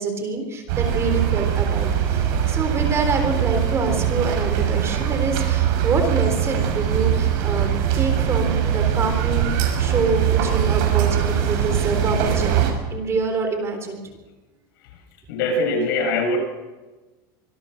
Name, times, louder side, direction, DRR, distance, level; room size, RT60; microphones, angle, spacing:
voice 1, 0.0-14.0, right 3 dB, 25° right, 6 dB, 3.8 m, -26 dB
sound 1, 0.7-12.7, right 9 dB, 65° right, 6.3 m, -21 dB
voice 2, 15.3-16.4, left 2 dB, 75° left, 3 dB, 6.9 m, -22 dB
25.0 x 18.5 x 6.6 m, 1.2 s
supercardioid pair, 145°, 11 cm